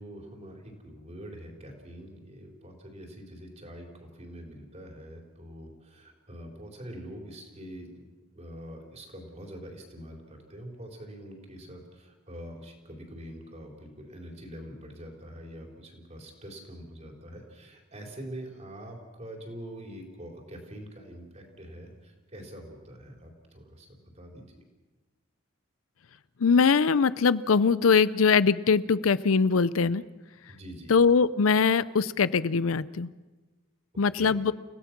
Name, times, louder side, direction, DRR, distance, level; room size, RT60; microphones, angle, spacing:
voice 1, 0.0-24.4 30.5-31.0 34.1-34.4, equal, 35° right, 1 dB, 4.0 m, -44 dB
voice 2, 26.4-30.0 30.9-33.1 34.0-34.5, left 5 dB, 85° left, 17 dB, 0.6 m, -22 dB
29.5 x 16.5 x 6.0 m, 1.2 s
head